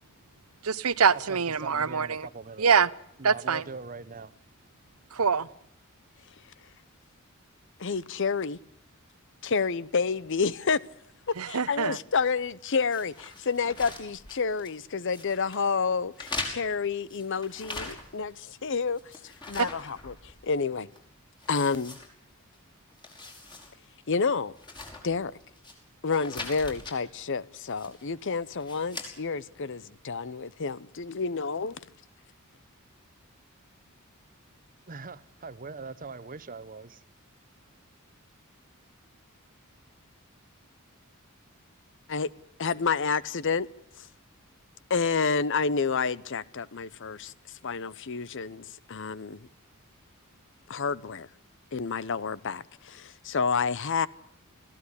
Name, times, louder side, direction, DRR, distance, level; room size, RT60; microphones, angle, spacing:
voice 1, 0.6-2.3 2.6-2.9 3.2-3.6 5.1-5.5 11.4-12.0 19.6-19.7, right 6 dB, 90° right, 0.9 m, -24 dB
voice 2, 1.3-2.7 3.2-4.3 34.9-37.0, right 4 dB, 40° right, 1.0 m, -41 dB
voice 3, 7.8-8.6 9.4-10.8 11.3-19.0 19.5-20.9 21.5-22.0 24.1-24.5 25.0-25.3 26.0-31.8 42.1-42.3 42.6-43.7 44.0-44.1 44.9-47.3 47.6-49.5 50.7-51.3 51.7-54.1, left 5 dB, 60° left, 0.8 m, -29 dB
sound 1, 12.9-14.8 15.1-15.6 16.1-18.3 18.6-20.6 20.9-21.0 21.4-22.6 22.9-23.7 24.0-24.1 24.6-25.7 26.1-27.0 27.7-28.1 28.6-29.1, left 2 dB, 20° left, 5.3 m, -41 dB
21.5 x 15.5 x 9.7 m
head